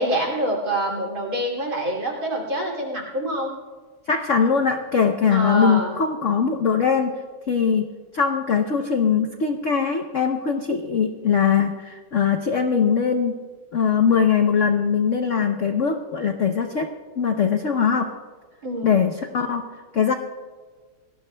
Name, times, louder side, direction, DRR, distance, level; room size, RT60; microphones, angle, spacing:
voice 1, 0.0-3.5 5.3-5.9 18.6-19.0, right 1 dB, 45° right, -1 dB, 3.2 m, -26 dB
voice 2, 4.1-7.1 7.5-13.3 13.7-16.9 17.2-18.1 18.8-19.7 19.9-20.1, left 6 dB, 65° left, 5 dB, 0.7 m, -21 dB
28.0 x 18.5 x 2.2 m, 1.4 s
omnidirectional pair, 2.3 m